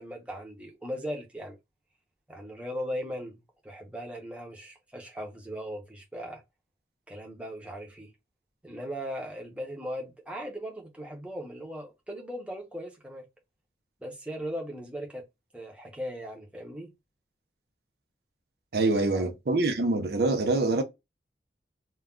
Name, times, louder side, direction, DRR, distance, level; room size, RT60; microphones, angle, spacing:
voice 1, 0.0-1.6 2.3-3.4 3.6-6.4 7.1-8.1 8.6-13.2 14.0-15.2 15.5-16.9 19.1-19.3, equal, 5° right, 0.6 m, -38 dB
voice 2, 18.7-20.8, right 2 dB, 65° right, 0.5 m, -25 dB
2.2 x 2.2 x 3.6 m
head